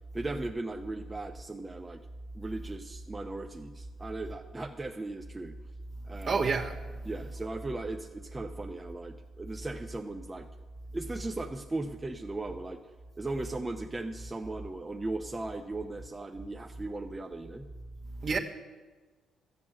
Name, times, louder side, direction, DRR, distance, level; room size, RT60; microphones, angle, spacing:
voice 1, 0.1-2.0 2.3-5.6 6.1-6.5 7.0-10.5 10.9-12.8 13.2-17.7, right 2 dB, 20° right, 0.7 m, -37 dB
voice 2, 6.2-6.8 18.2-18.4, right 4 dB, 50° right, 1.5 m, -28 dB
13.0 x 8.4 x 7.5 m
cardioid pair, 90°, 0 cm